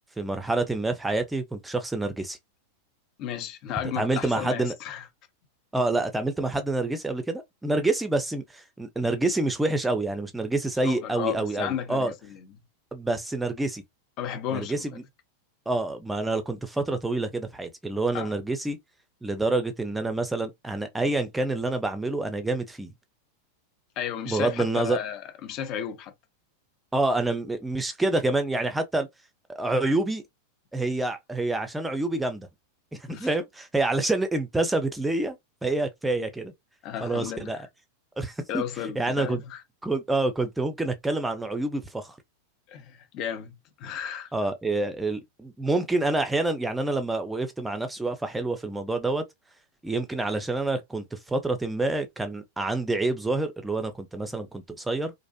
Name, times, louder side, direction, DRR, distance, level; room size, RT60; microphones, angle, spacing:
voice 1, 0.2-2.4 4.0-4.7 5.7-12.1 12.9-13.8 14.5-14.9 15.7-18.8 19.2-22.9 24.3-25.0 26.9-29.1 29.5-30.2 30.7-32.5 32.9-35.4 35.6-36.5 37.0-37.7 38.2-38.6 39.0-39.4 39.8-42.1 44.3-49.2 49.8-55.1, right 2 dB, 10° right, 0.5 m, -27 dB
voice 2, 3.2-5.1 10.8-12.5 14.2-15.0 18.1-18.3 24.0-26.1 33.1-33.3 36.8-37.7 38.5-39.6 42.7-44.3, left 9 dB, 40° left, 0.6 m, -34 dB
2.4 x 2.0 x 2.7 m
figure-of-eight pair, 90°, 0 cm